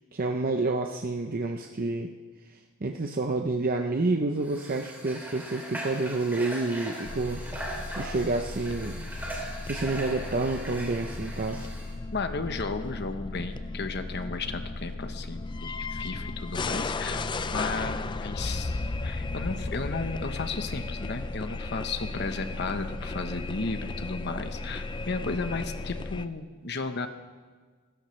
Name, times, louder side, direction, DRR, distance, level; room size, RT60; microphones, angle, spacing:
voice 1, 0.1-2.1 2.5-7.4 8.0-9.0 9.6-11.7, right 3 dB, 45° right, 3 dB, 0.7 m, -29 dB
Water / Water tap faucet, 4.4-11.9, right 1 dB, 10° right, 3.2 m, -39 dB
sound 1, 7.0-26.3, left 3 dB, 20° left, 0.4 m, -35 dB
voice 2, 12.1-27.1, left 3 dB, 55° left, 8 dB, 1.0 m, -34 dB
sound 2, 17.1-24.1, right 5 dB, 65° right, 2.0 m, -54 dB
26.5 x 14.0 x 3.3 m, 1.5 s
head